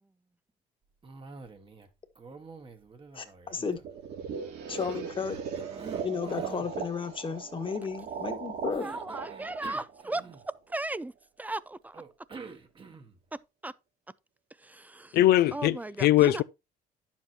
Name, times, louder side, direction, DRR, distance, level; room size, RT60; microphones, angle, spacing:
Cough, 1.0-1.9 2.2-4.2 4.8-6.7 8.7-10.7 11.9-13.2, right 4 dB, 30° right, 1.4 m, -47 dB
voice 1, 3.1-3.8 4.7-5.4 6.0-8.9, left 5 dB, 30° left, 1.6 m, -33 dB
sound 1, 3.8-10.7, right 6 dB, 75° right, 3.4 m, -38 dB
voice 2, 8.8-11.1 11.4-12.0 13.6-13.7 14.6-15.2 15.5-16.4, right 2 dB, 10° right, 0.4 m, -36 dB
voice 3, 15.1-16.4, left 14 dB, 70° left, 0.6 m, -21 dB
10.5 x 7.4 x 2.8 m
cardioid pair, 110°, 17 cm